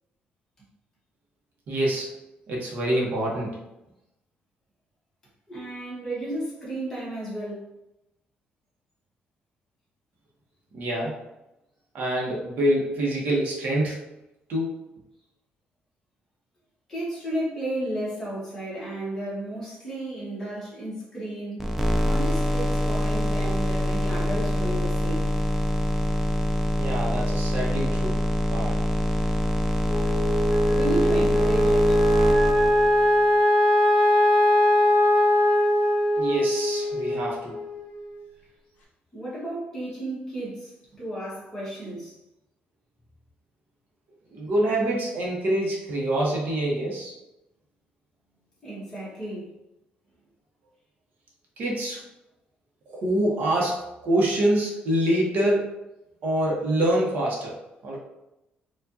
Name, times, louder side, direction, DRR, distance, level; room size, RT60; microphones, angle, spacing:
voice 1, 1.7-2.1 2.5-3.5 10.7-11.2 11.9-14.0 14.5-14.7 26.8-28.2 28.5-28.8 36.2-37.6 44.3-47.1 51.6-52.0 52.9-55.7 56.2-57.5 57.8-58.0, right 1 dB, 60° right, -3 dB, 1.0 m, -25 dB
voice 2, 5.5-7.7 16.9-21.8 22.0-25.3 30.7-32.0 39.1-42.1 48.6-49.5, right 1 dB, 15° left, -8 dB, 1.4 m, -33 dB
sound 1, 21.6-33.3, equal, 5° right, 0.4 m, -25 dB
Wind instrument woodwind instrument, 29.9-38.3, left 1 dB, 60° left, 1.3 m, -21 dB
4.5 x 2.4 x 2.7 m, 0.90 s
cardioid pair, 160°, 3 cm